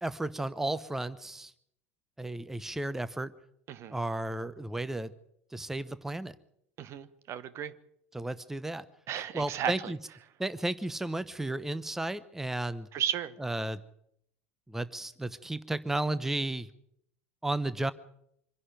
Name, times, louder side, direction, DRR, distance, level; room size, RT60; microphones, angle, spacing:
voice 1, 0.0-1.5 2.2-3.3 3.9-5.1 5.5-6.3 8.1-8.8 9.3-10.0 10.4-12.9 13.4-13.8 14.7-16.7 17.4-17.9, right 2 dB, 5° right, 16 dB, 0.9 m, -33 dB
voice 2, 6.8-7.7 9.1-9.9 12.9-13.3, right 10 dB, 40° right, 15 dB, 1.2 m, -34 dB
25.5 x 11.0 x 9.3 m, 0.73 s
figure-of-eight pair, 70°, 7 cm